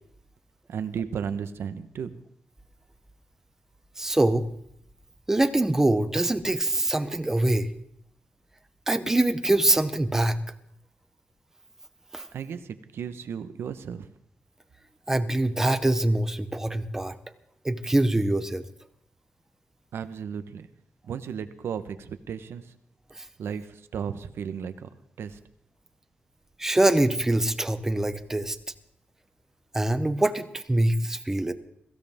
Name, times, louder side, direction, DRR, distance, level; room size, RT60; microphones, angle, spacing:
voice 1, 0.7-2.2 12.3-14.1 19.9-20.7 21.0-22.7 23.4-24.9 25.2-25.4, right 7 dB, 85° right, 11 dB, 1.1 m, -34 dB
voice 2, 4.0-4.5 5.3-7.7 8.9-10.4 12.1-12.2 15.1-17.1 17.6-18.6 26.6-28.6 29.7-31.5, right 1 dB, 10° right, 11 dB, 0.8 m, -24 dB
22.5 x 15.5 x 3.6 m, 0.72 s
wide cardioid pair, 180°, 4 cm